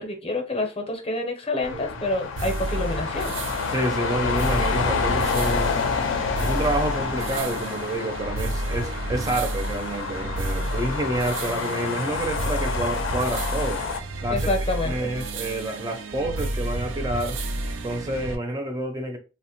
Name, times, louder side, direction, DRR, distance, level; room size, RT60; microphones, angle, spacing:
voice 1, 0.0-3.4 14.3-15.1, left 2 dB, 30° left, 0.6 m, -28 dB
sound 1, 1.6-14.0, left 5 dB, 80° left, 0.4 m, -29 dB
sound 2, 2.4-18.4, right 2 dB, 85° right, 0.5 m, -31 dB
voice 2, 3.7-5.8 6.4-13.8 14.2-17.4 17.8-19.2, right 1 dB, 20° right, 0.4 m, -28 dB
2.8 x 2.1 x 2.9 m
head